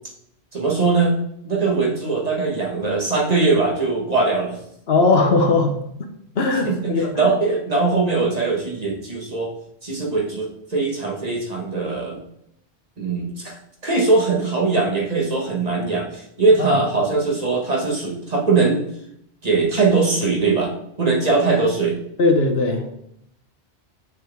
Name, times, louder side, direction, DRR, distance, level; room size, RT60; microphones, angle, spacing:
voice 1, 0.5-1.2 1.4-4.6 6.6-9.5 9.8-12.2 13.0-13.6 13.8-18.8 19.4-20.7 21.0-22.0, right 3 dB, 35° right, -1 dB, 1.4 m, -21 dB
voice 2, 4.9-5.8 6.4-7.3 16.7-16.8 22.2-22.8, left 3 dB, 70° left, 5 dB, 1.1 m, -18 dB
8.8 x 4.6 x 3.4 m, 0.73 s
omnidirectional pair, 1.1 m